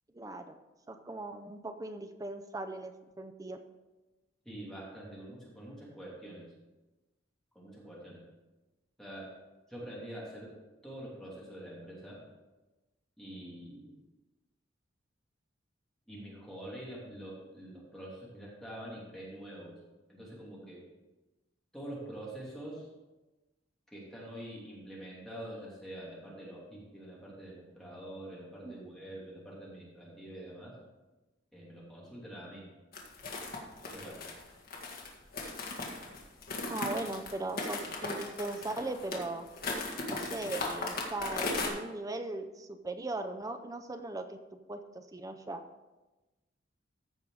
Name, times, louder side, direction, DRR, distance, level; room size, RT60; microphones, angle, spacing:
voice 1, 0.1-0.6 0.9-3.6 28.6-28.8 36.7-39.4 40.1-45.6, right 2 dB, 20° right, 8 dB, 0.5 m, -39 dB
voice 2, 4.4-6.5 7.5-8.2 9.0-9.3 9.7-10.5 10.8-12.2 13.2-14.0 16.1-19.8 20.1-20.8 21.7-22.9 23.9-30.7 31.5-32.6 33.8-34.2, right 1 dB, 5° left, -7 dB, 2.6 m, -45 dB
sound 1, 32.9-41.7, left 3 dB, 50° left, 1.8 m, -37 dB
14.5 x 5.2 x 4.8 m, 1.1 s
head